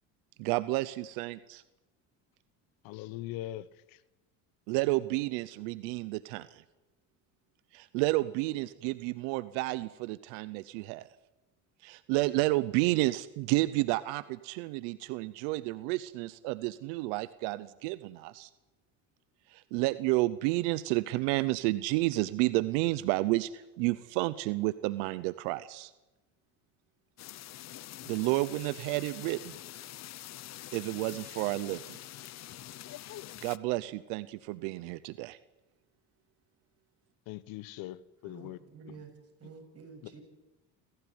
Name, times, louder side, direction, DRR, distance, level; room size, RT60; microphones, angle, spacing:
voice 1, 0.4-1.6 4.7-6.6 7.7-11.0 11.8-18.5 19.5-25.9 28.1-29.6 30.7-32.0 33.4-35.4, right 19 dB, 90° right, 16 dB, 0.9 m, -31 dB
voice 2, 2.8-4.0 37.3-38.6, left 15 dB, 75° left, 18 dB, 1.2 m, -41 dB
sound 1, 27.2-33.6, left 14 dB, 45° left, 0.7 m, -45 dB
voice 3, 38.2-39.1 39.4-40.2, right 5 dB, 45° right, 4 dB, 7.4 m, -50 dB
27.5 x 16.0 x 9.6 m, 1.1 s
supercardioid pair, 100°, 36 cm